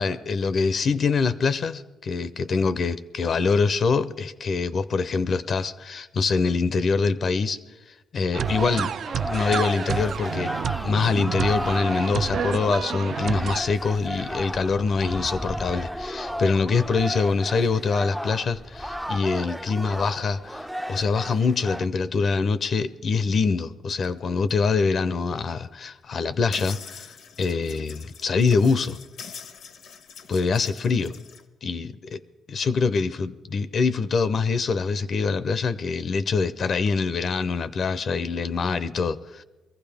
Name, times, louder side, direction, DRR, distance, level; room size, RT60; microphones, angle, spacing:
voice 1, 0.0-7.6 8.1-8.9 9.3-10.5 10.8-27.1 27.4-29.0 30.3-31.1 31.6-32.2 32.5-39.4, left 4 dB, 50° left, 0.6 m, -24 dB
sound 1, 8.3-13.6, right 8 dB, 65° right, 0.4 m, -30 dB
sound 2, 8.4-21.9, equal, ahead, 0.4 m, -33 dB
sound 3, 24.0-24.1 24.5-24.6 25.7-25.8 26.5-31.5, left 6 dB, 80° left, 1.0 m, -43 dB
22.0 x 15.0 x 3.5 m
cardioid pair, 110°, 0 cm